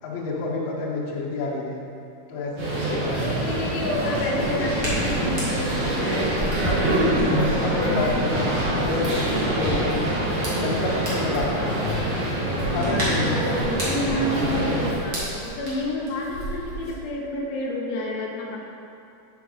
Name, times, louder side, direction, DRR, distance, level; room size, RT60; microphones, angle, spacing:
voice 1, 0.0-1.8 2.3-3.4 4.0-4.6 6.6-6.8 7.2-8.5 8.7-10.2 10.5-12.0 12.7-13.4, left 3 dB, 65° left, -5 dB, 1.7 m, -29 dB
sound 1, 2.6-14.9, right 1 dB, 60° right, 1.5 m, -25 dB
Hands, 2.9-16.9, right 2 dB, 85° right, 0.6 m, -34 dB
voice 2, 3.1-6.7 12.6-18.6, left 1 dB, 90° left, -2 dB, 1.5 m, -30 dB
7.1 x 4.6 x 3.7 m, 2.6 s
omnidirectional pair, 3.9 m